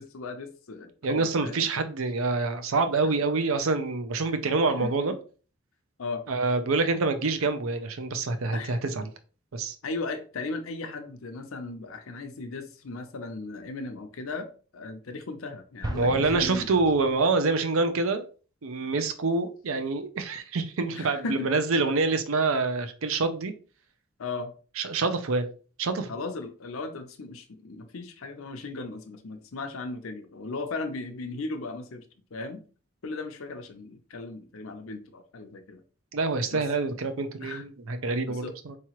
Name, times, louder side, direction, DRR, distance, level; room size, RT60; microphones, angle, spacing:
voice 1, 0.0-1.7 4.8-4.9 6.0-6.2 8.5-8.8 9.8-14.5 14.7-16.7 20.9-21.5 24.2-24.5 26.1-32.0 32.3-32.6 33.0-35.8 36.5-36.6 37.4-37.6 38.3-38.5, left 3 dB, 85° left, 0.7 m, -37 dB
voice 2, 1.0-5.1 6.3-9.1 9.5-9.7 15.9-18.2 18.6-23.5 24.8-25.5 25.8-26.1 36.1-38.8, right 3 dB, 80° right, 0.6 m, -26 dB
Explosion, 15.8-17.7, right 1 dB, 20° right, 0.4 m, -37 dB
4.7 x 3.0 x 3.0 m
head